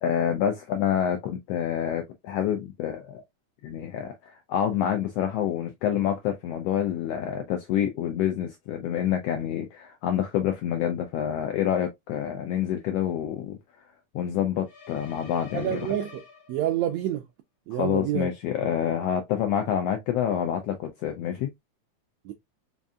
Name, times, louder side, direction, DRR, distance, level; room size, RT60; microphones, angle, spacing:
voice 1, 0.0-3.2 3.6-13.6 14.1-15.9 17.7-21.5, left 10 dB, 85° left, 1.4 m, -27 dB
sound 1, 14.6-17.0, left 5 dB, 65° left, 0.9 m, -48 dB
voice 2, 15.5-16.2 16.5-17.2 17.7-18.3 22.2-22.3, right 11 dB, 80° right, 1.5 m, -28 dB
5.1 x 2.6 x 2.3 m
omnidirectional pair, 3.5 m